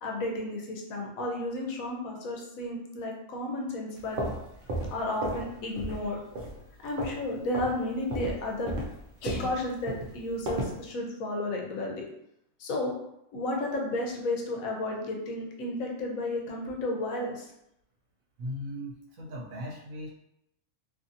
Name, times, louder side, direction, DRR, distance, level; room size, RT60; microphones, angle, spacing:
voice 1, 0.0-4.2 4.9-6.2 6.8-8.8 9.2-12.1 12.6-12.9 13.3-17.5, left 1 dB, 80° left, 0 dB, 1.1 m, -32 dB
sound 1, 4.0-5.5 5.8-6.1 6.3-7.2 7.5-7.8 8.1-10.8, right 1 dB, 55° right, 0.6 m, -34 dB
voice 2, 18.4-20.1, equal, 75° right, -3 dB, 1.1 m, -38 dB
2.8 x 2.6 x 2.6 m, 0.79 s
omnidirectional pair, 1.4 m